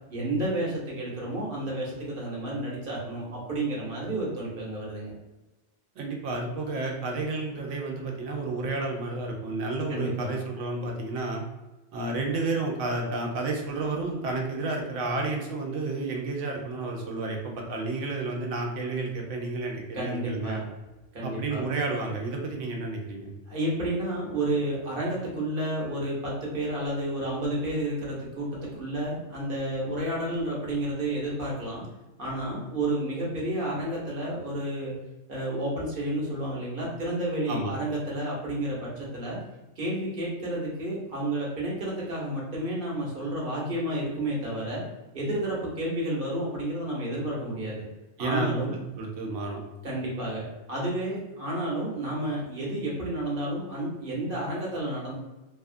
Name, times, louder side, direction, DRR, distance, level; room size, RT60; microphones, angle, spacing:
voice 1, 0.1-5.1 9.9-10.4 19.9-20.6 21.1-21.6 23.5-31.8 32.2-34.9 35.3-39.4 39.8-44.8 45.1-47.8 48.2-48.7 49.8-55.1, right 1 dB, 50° right, -4 dB, 1.0 m, -31 dB
voice 2, 6.0-11.4 11.9-20.6 21.2-23.3 37.5-37.8 48.2-49.6, right 3 dB, 80° right, 1 dB, 1.0 m, -31 dB
2.8 x 2.3 x 2.4 m, 1.1 s
omnidirectional pair, 1.3 m